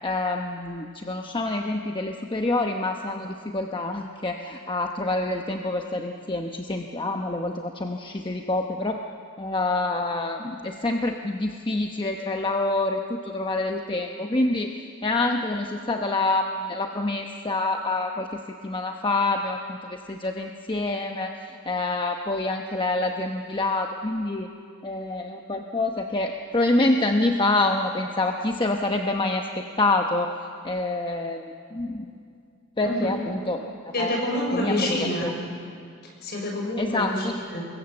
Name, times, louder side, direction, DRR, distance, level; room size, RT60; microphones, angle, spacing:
voice 1, 0.0-9.0 9.4-24.5 24.8-30.3 30.6-32.1 32.8-34.2 34.5-35.3 36.8-37.4, left 2 dB, 25° left, 3 dB, 0.9 m, -27 dB
voice 2, 32.8-33.1 33.9-35.3 36.2-37.2 37.5-37.7, left 1 dB, 50° left, 0 dB, 6.2 m, -27 dB
25.5 x 22.0 x 7.8 m, 2.4 s
head